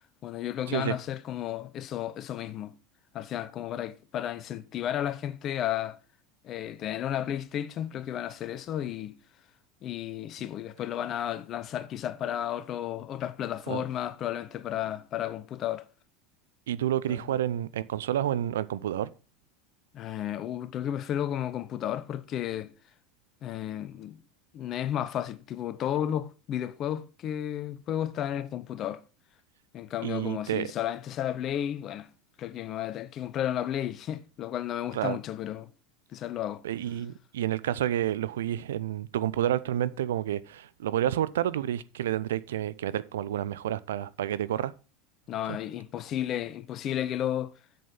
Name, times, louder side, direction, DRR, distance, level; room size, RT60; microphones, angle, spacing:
voice 1, 0.2-2.8 3.1-6.0 6.4-9.2 9.8-15.8 17.1-17.4 19.9-22.7 23.4-24.2 24.5-29.0 29.7-32.1 32.4-35.7 36.1-36.6 45.3-47.5, left 11 dB, 40° left, 0.9 m, -33 dB
voice 2, 16.7-19.1 30.0-30.7 34.9-35.2 36.6-44.7 45.5-45.6, right 11 dB, 70° right, 0.5 m, -29 dB
7.8 x 7.7 x 5.3 m
figure-of-eight pair, 80°, 0 cm